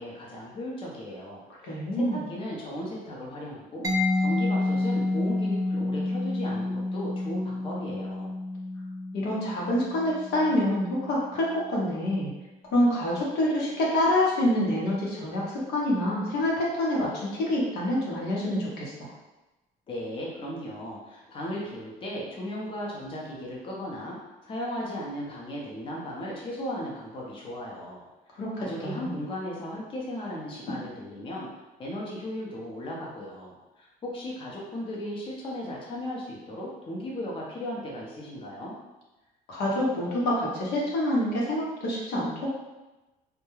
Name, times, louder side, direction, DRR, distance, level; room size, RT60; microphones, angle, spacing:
voice 1, 0.0-1.8 2.1-3.9 4.2-8.3 19.9-24.2 24.4-31.5 31.8-38.8, left 1 dB, 30° left, -4 dB, 0.6 m, -36 dB
voice 2, 1.6-2.2 9.1-12.3 12.7-18.9 28.4-29.2 39.5-42.5, left 1 dB, 80° left, -5 dB, 0.9 m, -26 dB
Mallet percussion, 3.8-11.4, left 2 dB, 20° right, 0.4 m, -29 dB
2.3 x 2.2 x 3.0 m, 1.1 s
cardioid pair, 110°, 17 cm